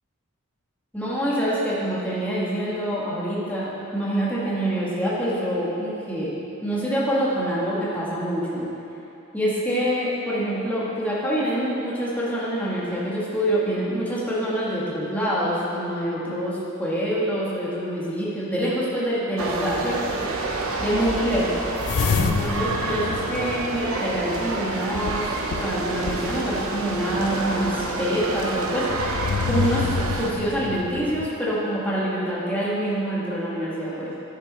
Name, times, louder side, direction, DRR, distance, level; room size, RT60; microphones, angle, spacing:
voice 1, 0.9-6.3 6.6-8.7 9.3-20.2 20.8-21.6 22.1-28.9 29.5-29.8 30.2-34.1, equal, 5° left, -8 dB, 1.9 m, -26 dB
sound 1, 19.4-30.3, right 3 dB, 75° right, 0.9 m, -29 dB
sound 2, 21.8-24.2 24.9-26.5 27.2-27.3 28.8-31.3, left 5 dB, 75° left, 0.4 m, -28 dB
10.5 x 7.4 x 4.3 m, 2.9 s
head